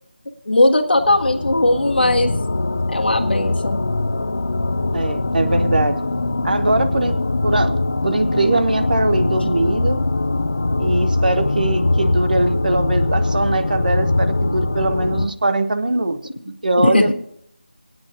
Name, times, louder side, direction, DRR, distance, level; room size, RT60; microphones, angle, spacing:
voice 1, 0.5-2.3 2.9-3.8 16.8-17.1, left 2 dB, 70° left, 2 dB, 1.3 m, -17 dB
sound 1, 1.0-15.3, left 2 dB, 40° left, 0.5 m, -22 dB
voice 2, 4.9-6.0 6.4-7.2 7.4-7.8 8.0-10.0 10.8-16.2 16.4-17.1, right 2 dB, 55° right, 10 dB, 0.8 m, -21 dB
23.0 x 8.8 x 2.9 m, 0.72 s
figure-of-eight pair, 175°, 6 cm